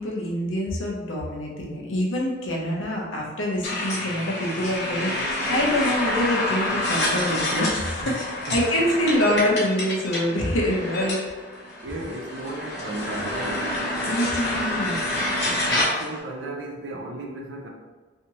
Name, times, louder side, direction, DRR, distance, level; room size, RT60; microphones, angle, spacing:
voice 1, 0.0-8.2 8.5-11.2 14.0-15.0, left 1 dB, 90° left, -2 dB, 0.8 m, -25 dB
sound 1, 3.6-16.2, left 1 dB, 60° left, 1.0 m, -28 dB
voice 2, 8.0-9.0 11.8-13.7 15.4-17.7, right 2 dB, 70° right, 0 dB, 0.6 m, -35 dB
3.4 x 2.7 x 2.9 m, 1.3 s
head